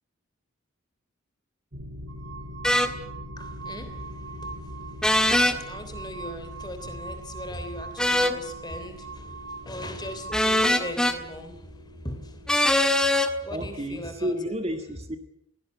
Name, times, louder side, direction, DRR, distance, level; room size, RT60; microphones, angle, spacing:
sound 1, 1.7-13.0, left 1 dB, 50° right, 2.6 m, -43 dB
sound 2, 2.1-10.9, right 5 dB, 85° right, 5.4 m, -42 dB
sound 3, 2.6-2.9 5.0-5.6 8.0-8.4 10.3-11.2 12.5-13.3, left 1 dB, 5° left, 1.6 m, -21 dB
voice 1, 3.4-12.5 13.0-13.1 13.4-14.5, left 1 dB, 20° left, 8 dB, 3.4 m, -39 dB
voice 2, 13.5-15.2, equal, 30° right, 7 dB, 1.8 m, -31 dB
22.0 x 17.5 x 9.6 m, 0.80 s
head